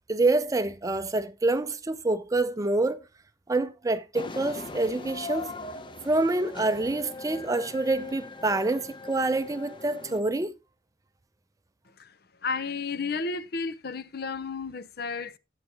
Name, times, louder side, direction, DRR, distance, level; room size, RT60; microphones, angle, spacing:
voice 1, 0.1-3.0 3.5-5.5 6.0-10.6, right 2 dB, 20° right, 0.5 m, -26 dB
sound 1, 4.1-10.2, left 3 dB, 25° left, 0.7 m, -40 dB
voice 2, 12.4-15.4, left 4 dB, 60° left, 0.8 m, -32 dB
12.5 x 8.1 x 2.9 m
head